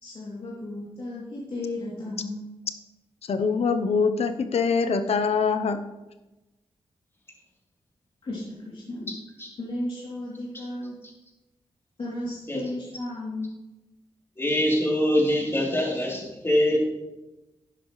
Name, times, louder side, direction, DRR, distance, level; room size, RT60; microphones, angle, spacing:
voice 1, 0.0-2.4 8.2-9.1 9.6-11.0 12.0-13.5, left 1 dB, 65° left, -7 dB, 2.9 m, -34 dB
voice 2, 3.3-5.8, left 5 dB, 80° left, 9 dB, 0.8 m, -24 dB
voice 3, 14.4-16.8, left 1 dB, 25° left, -3 dB, 3.4 m, -24 dB
11.5 x 10.0 x 3.2 m, 1.0 s
cardioid pair, 75°, 10 cm